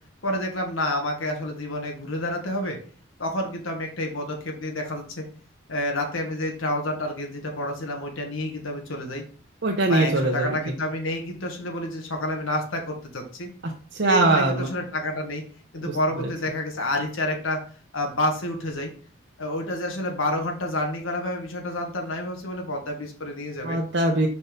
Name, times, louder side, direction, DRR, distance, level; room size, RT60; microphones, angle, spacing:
voice 1, 0.2-2.8 3.2-5.2 5.7-9.2 9.9-13.5 14.0-15.4 15.7-17.6 17.9-18.9 19.4-23.8, left 1 dB, 80° left, 2 dB, 1.5 m, -29 dB
voice 2, 9.6-10.6 13.6-14.7 15.8-16.3 23.6-24.3, right 2 dB, 60° right, 0 dB, 0.8 m, -22 dB
5.5 x 4.3 x 5.1 m, 0.43 s
head